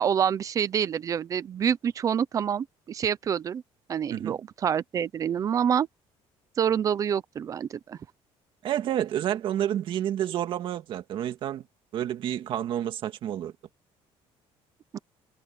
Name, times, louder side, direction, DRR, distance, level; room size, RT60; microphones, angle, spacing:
voice 1, 0.0-3.6 3.9-5.9 6.6-8.0 14.9-15.0, right 8 dB, 30° right, 0.7 m, -27 dB
voice 2, 8.6-11.6 11.9-13.5, right 11 dB, 50° right, 2.0 m, -29 dB
cardioid pair, 165°, 11 cm